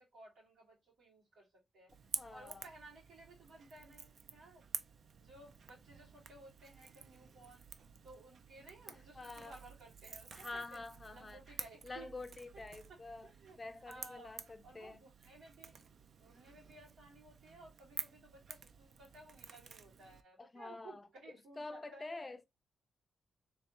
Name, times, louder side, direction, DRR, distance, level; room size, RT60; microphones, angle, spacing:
voice 1, 0.0-1.9 2.3-4.7 5.1-7.7 8.0-10.8 11.1-12.1 12.9-13.6 13.9-14.3 14.6-15.8 16.2-22.0, right 2 dB, 85° right, 2.5 m, -57 dB
Crackle / Crack, 1.9-20.2, right 6 dB, 60° right, 0.4 m, -50 dB
voice 2, 2.2-2.7 8.9-9.5 10.3-11.4 11.8-13.3 13.6-15.0 20.4-21.0 21.6-22.4, left 3 dB, 25° left, 0.4 m, -47 dB
3.4 x 3.2 x 2.9 m
cardioid pair, 115°, 0 cm